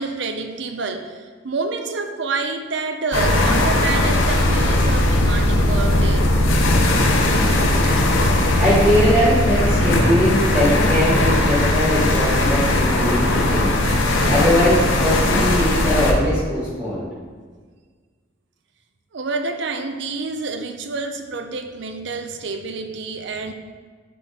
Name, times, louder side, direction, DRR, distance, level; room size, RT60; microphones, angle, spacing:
voice 1, 0.0-6.4 19.1-23.5, right 3 dB, 65° right, 6 dB, 0.6 m, -28 dB
sound 1, 3.1-16.1, left 1 dB, 85° left, 0.9 m, -18 dB
voice 2, 8.5-17.1, equal, 5° right, -13 dB, 1.7 m, -21 dB
10.0 x 3.7 x 4.1 m, 1.5 s
head